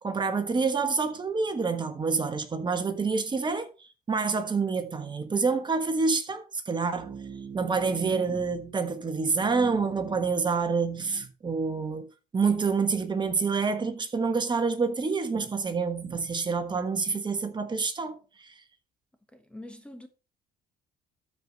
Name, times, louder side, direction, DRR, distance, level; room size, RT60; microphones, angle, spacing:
voice 1, 0.0-3.7 4.1-12.1 12.3-18.5, right 4 dB, 25° right, 1.4 m, -27 dB
voice 2, 19.3-20.1, left 1 dB, 5° left, 1.1 m, -44 dB
13.0 x 5.0 x 4.1 m
cardioid pair, 110°, 17 cm